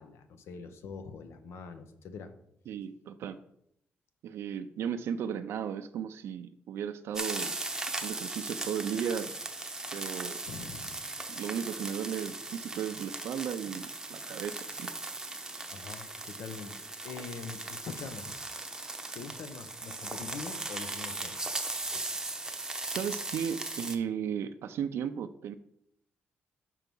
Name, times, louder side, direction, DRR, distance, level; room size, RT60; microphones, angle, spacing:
voice 1, 0.0-2.3 10.5-11.0 15.7-16.8 17.0-18.4 19.1-21.4 21.9-22.1, left 5 dB, 90° left, 9 dB, 0.7 m, -43 dB
voice 2, 2.7-3.4 4.2-7.6 7.9-9.3 9.9-10.4 11.3-14.9 22.9-25.5, right 8 dB, 85° right, 9 dB, 0.4 m, -35 dB
sound 1, 7.1-24.0, right 2 dB, 15° right, 0.7 m, -38 dB
5.7 x 4.6 x 5.3 m, 0.74 s
cardioid pair, 125°, 4 cm